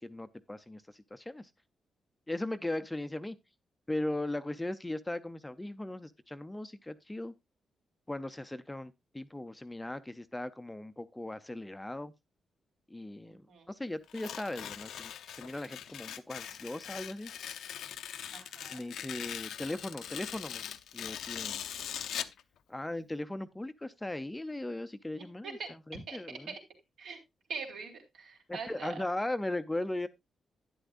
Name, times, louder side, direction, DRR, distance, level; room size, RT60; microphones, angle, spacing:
voice 1, 0.0-1.5 2.3-3.4 3.9-7.3 8.1-12.1 12.9-17.3 18.7-20.6 20.9-21.6 22.7-26.5 28.5-30.1, left 1 dB, 10° left, 0.5 m, -38 dB
voice 2, 13.3-13.7 18.3-18.8 25.2-25.7 26.1-26.6 27.0-27.2 27.5-29.0, right 5 dB, 80° right, 3.6 m, -43 dB
Tearing, 14.1-22.4, left 9 dB, 90° left, 0.7 m, -41 dB
11.5 x 10.0 x 2.5 m
wide cardioid pair, 175°, 0 cm